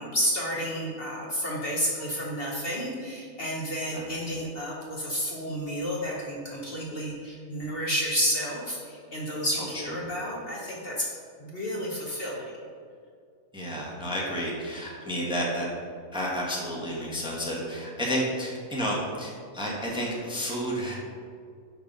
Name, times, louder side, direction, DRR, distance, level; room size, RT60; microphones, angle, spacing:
voice 1, 0.0-11.0 11.4-12.5, equal, 45° left, -4 dB, 1.2 m, -31 dB
voice 2, 13.5-15.7 16.1-21.0, equal, 5° right, -4 dB, 1.2 m, -31 dB
5.9 x 5.3 x 5.2 m, 2.2 s
omnidirectional pair, 1.5 m